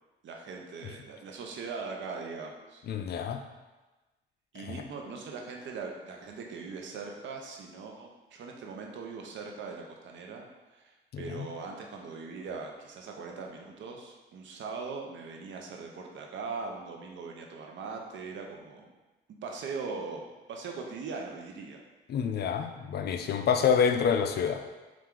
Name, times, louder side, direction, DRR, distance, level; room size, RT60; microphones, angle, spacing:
voice 1, 0.2-2.8 4.5-18.9 19.4-20.2 20.5-21.8, right 4 dB, 70° right, 1 dB, 0.7 m, -40 dB
voice 2, 2.9-3.4 4.7-4.8 11.1-11.5 22.1-24.6, left 7 dB, 55° left, 7 dB, 0.4 m, -27 dB
4.4 x 2.5 x 3.7 m, 1.2 s
cardioid pair, 90°, 20 cm